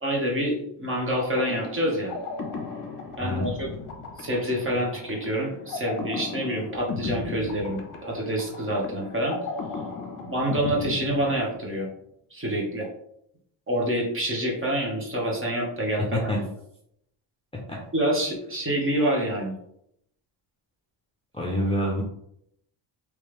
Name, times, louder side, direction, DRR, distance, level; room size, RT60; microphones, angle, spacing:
voice 1, 0.0-2.1 3.2-3.7 4.2-9.4 10.2-11.9 12.3-12.9 13.7-16.5 17.9-19.5, right 1 dB, 25° right, -2 dB, 1.2 m, -27 dB
sound 1, 1.2-11.9, left 4 dB, 45° left, 0.8 m, -36 dB
voice 2, 16.1-16.4 17.7-17.8 21.3-22.0, equal, 10° left, -3 dB, 0.7 m, -27 dB
3.3 x 3.3 x 3.2 m, 0.74 s
cardioid pair, 115°, 46 cm